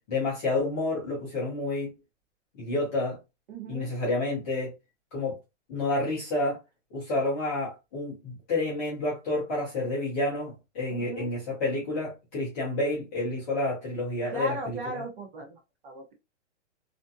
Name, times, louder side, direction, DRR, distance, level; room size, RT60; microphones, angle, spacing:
voice 1, 0.1-1.9 2.6-3.2 3.7-4.7 5.1-5.3 5.7-6.6 6.9-14.5, left 2 dB, 15° left, 0.5 m, -29 dB
voice 2, 3.5-3.9 10.9-11.3 14.3-16.1, right 2 dB, 45° right, 0.8 m, -37 dB
2.5 x 2.1 x 2.6 m
hypercardioid pair, 160°, 37 cm